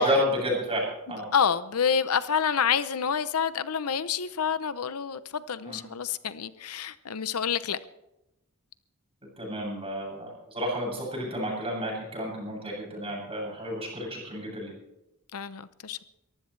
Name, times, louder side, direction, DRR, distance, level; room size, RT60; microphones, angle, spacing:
voice 1, 0.0-1.3 5.6-5.8 9.4-14.7, equal, 25° right, 7.8 m, -30 dB
voice 2, 1.3-7.8 15.3-16.0, left 7 dB, 85° left, 0.7 m, -28 dB
23.0 x 15.0 x 3.3 m
head